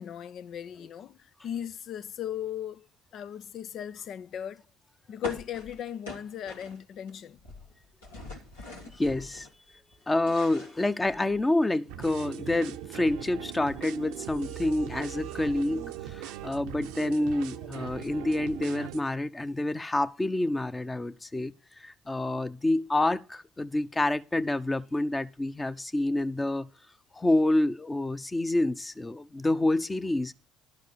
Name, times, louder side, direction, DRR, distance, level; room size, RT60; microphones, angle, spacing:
voice 1, 0.0-2.9 3.1-4.6 5.1-7.4, left 10 dB, 55° left, 0.6 m, -37 dB
sound 1, 5.2-7.1 7.4-9.5 9.9-11.5, left 1 dB, 90° left, 2.7 m, -43 dB
voice 2, 8.9-9.5 10.1-21.5 21.8-26.7 27.1-30.3, left 2 dB, 20° left, 1.0 m, -28 dB
sound 2, 11.9-19.0, right 12 dB, 75° right, 0.7 m, -40 dB
12.0 x 4.8 x 8.5 m
hypercardioid pair, 55°, 0 cm